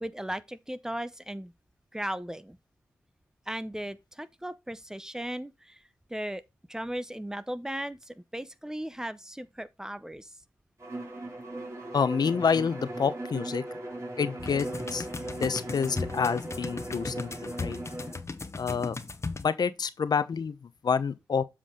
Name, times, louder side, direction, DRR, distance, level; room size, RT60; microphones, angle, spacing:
voice 1, 0.0-1.5 1.9-2.6 3.5-5.8 6.1-6.4 6.7-10.3, right 1 dB, 10° right, 0.8 m, -36 dB
Bowed string instrument, 10.8-18.2, right 1 dB, 40° right, 3.7 m, -38 dB
voice 2, 11.9-13.6 14.2-17.8 18.5-19.0 19.4-21.4, left 6 dB, 65° left, 0.8 m, -28 dB
sound 1, 14.4-19.4, left 3 dB, 40° left, 1.0 m, -37 dB
7.7 x 4.9 x 3.7 m
cardioid pair, 50°, 7 cm